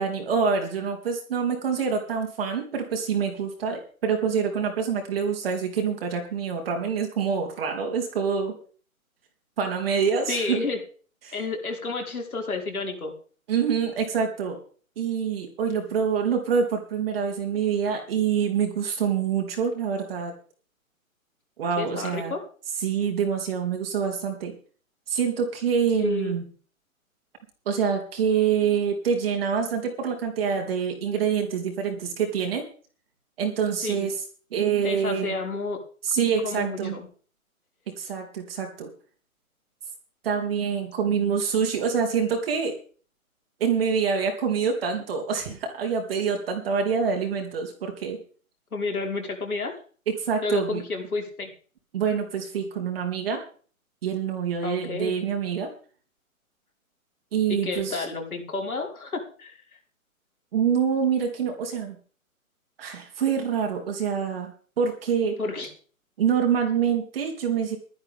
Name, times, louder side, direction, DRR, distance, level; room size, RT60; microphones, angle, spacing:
voice 1, 0.0-8.5 9.6-10.6 11.2-11.3 13.5-14.6 15.0-20.3 21.6-22.3 22.8-24.5 25.1-26.4 27.6-32.6 33.4-34.1 34.5-35.3 36.0-37.0 38.0-38.9 40.2-42.8 43.6-48.2 50.1-50.8 51.9-53.4 54.0-55.7 57.3-58.0 60.5-62.0 62.8-64.5 64.8-65.3 66.2-67.8, right 6 dB, 40° right, 2 dB, 3.3 m, -26 dB
voice 2, 10.3-10.8 11.3-13.1 21.8-22.4 26.0-26.4 33.8-34.1 34.8-35.8 36.4-37.1 48.7-49.8 50.4-51.5 54.6-55.1 57.5-59.5 65.4-65.7, left 3 dB, 80° left, 1 dB, 5.7 m, -30 dB
16.0 x 12.5 x 3.7 m, 0.41 s
hypercardioid pair, 150°, 43 cm